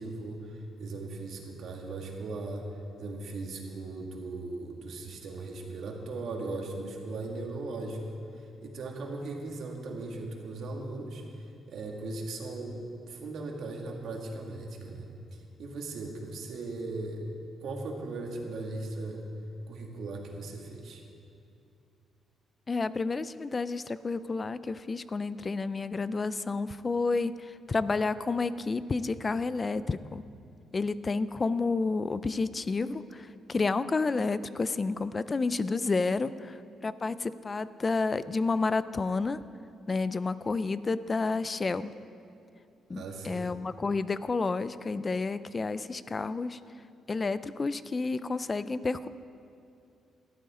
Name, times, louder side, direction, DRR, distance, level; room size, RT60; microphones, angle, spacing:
voice 1, 0.0-2.7 3.0-8.0 8.6-11.2 11.7-17.3 17.6-19.3 19.7-21.0 42.9-43.5, right 2 dB, 65° right, 1 dB, 2.0 m, -38 dB
voice 2, 22.7-30.2 30.7-39.4 39.9-41.9 42.9-46.6 47.1-49.1, left 3 dB, 25° left, 15 dB, 0.4 m, -30 dB
18.0 x 13.0 x 3.7 m, 2.6 s
cardioid pair, 130°, 0 cm